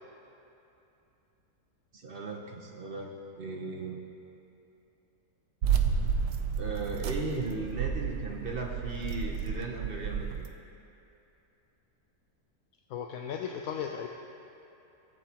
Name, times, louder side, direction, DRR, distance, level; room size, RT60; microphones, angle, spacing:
voice 1, 1.9-3.1 3.4-4.0 6.6-10.5, right 3 dB, 45° right, 0 dB, 0.8 m, -37 dB
sound 1, 5.6-10.5, right 7 dB, 85° right, 1.2 m, -31 dB
voice 2, 12.9-14.1, left 7 dB, 70° left, 2 dB, 0.9 m, -36 dB
17.0 x 8.0 x 2.9 m, 2.8 s
omnidirectional pair, 1.7 m